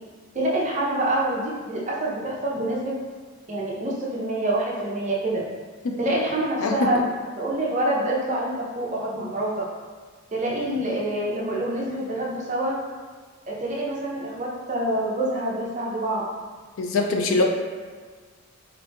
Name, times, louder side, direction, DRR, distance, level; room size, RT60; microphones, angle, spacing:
voice 1, 0.3-2.9 3.5-5.4 6.0-7.0 7.4-9.7 10.3-12.8 13.5-16.2, right 1 dB, 35° right, -4 dB, 0.5 m, -26 dB
voice 2, 6.6-7.0 16.8-17.4, left 3 dB, 65° left, 3 dB, 0.4 m, -23 dB
2.9 x 2.5 x 3.3 m, 1.5 s
head